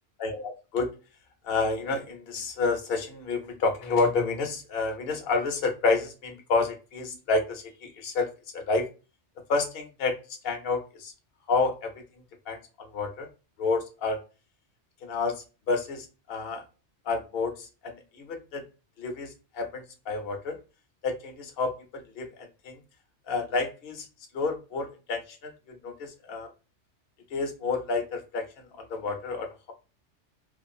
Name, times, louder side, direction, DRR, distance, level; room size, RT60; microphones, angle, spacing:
voice 1, 0.2-1.0 1.4-8.9 9.5-11.1 11.5-12.0 12.5-13.3 13.6-14.2 15.0-16.6 17.0-18.6 19.0-20.6 21.0-22.8 23.3-24.1 24.3-26.5 27.3-29.7, left 3 dB, 55° left, 3 dB, 0.9 m, -30 dB
2.6 x 2.4 x 2.5 m, 0.31 s
omnidirectional pair, 1.2 m